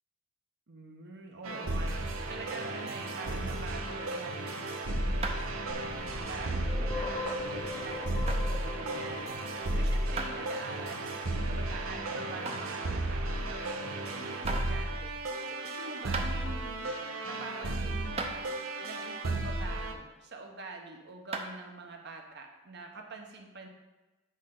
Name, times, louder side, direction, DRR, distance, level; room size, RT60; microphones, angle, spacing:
voice 1, 0.7-5.5 5.9-11.2 11.5-17.0 17.2-18.4 18.8-23.7, right 3 dB, 55° right, 2 dB, 1.0 m, -46 dB
sound 1, 1.4-19.9, right 1 dB, 80° right, 0.8 m, -34 dB
sound 2, 5.2-5.6 6.1-6.2 7.0-7.1 8.3-8.4 10.2-10.3 10.9-11.0 12.5-12.8 13.9-14.0 14.5-14.7 15.7-15.8 16.1-16.3 17.6-17.7 18.2-18.4 21.3-21.6, right 3 dB, 30° right, 0.6 m, -35 dB
sound 3, 5.7-10.5, left 3 dB, 25° left, 0.7 m, -40 dB
8.3 x 5.5 x 3.8 m, 1.2 s
head